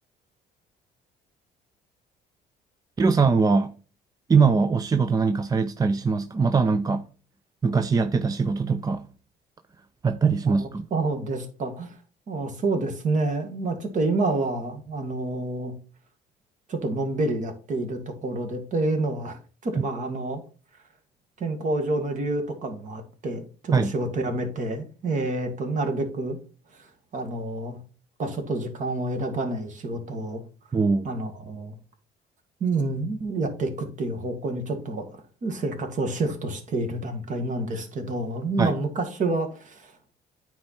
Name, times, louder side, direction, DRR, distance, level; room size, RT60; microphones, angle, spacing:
voice 1, 3.0-3.7 4.3-7.1 7.6-9.1 10.0-10.8 23.7-23.9 30.7-31.1 38.6-38.7, right 5 dB, 20° right, 0.5 m, -22 dB
voice 2, 10.9-12.0 12.3-15.7 16.7-20.4 21.4-26.4 26.7-27.8 28.2-30.4 31.0-31.8 32.6-40.1, right 2 dB, 50° right, 1.9 m, -28 dB
9.3 x 4.4 x 4.2 m
cardioid pair, 110°, 17 cm